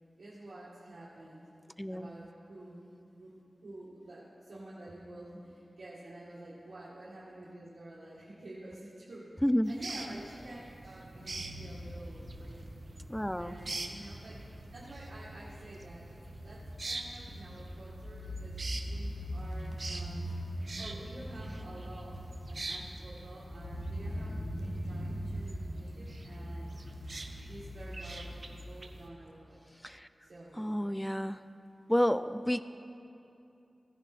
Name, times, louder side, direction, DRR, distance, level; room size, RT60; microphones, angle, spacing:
voice 1, 0.2-1.4 1.9-2.8 3.2-9.3 9.7-12.6 13.4-14.4 14.7-20.2 20.8-22.2 22.5-26.7 27.4-29.6 30.2-30.8, right 1 dB, 70° right, -8 dB, 1.8 m, -49 dB
voice 2, 1.8-2.1 9.4-9.7 13.1-13.6 29.8-30.1 30.6-31.4 31.9-32.6, equal, 5° left, 13 dB, 0.4 m, -30 dB
sound 1, 9.6-29.1, right 2 dB, 50° right, 0.9 m, -46 dB
sound 2, 11.2-28.2, equal, 45° left, 3.5 m, -42 dB
16.5 x 10.5 x 4.3 m, 2.7 s
cardioid pair, 50°, 0 cm